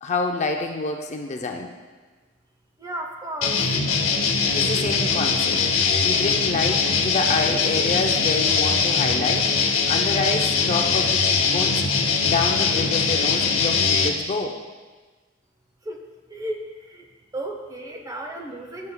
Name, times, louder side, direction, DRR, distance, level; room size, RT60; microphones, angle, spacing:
voice 1, 0.0-1.7 4.5-5.6 6.0-11.8 12.2-14.6, left 3 dB, 35° left, 3 dB, 0.5 m, -27 dB
voice 2, 2.8-3.6 15.8-16.0 16.3-17.1 17.3-18.9, right 1 dB, 15° right, 2 dB, 0.8 m, -34 dB
sound 1, 3.4-14.1, left 5 dB, 75° left, 0.8 m, -21 dB
10.5 x 7.6 x 2.2 m, 1.3 s
head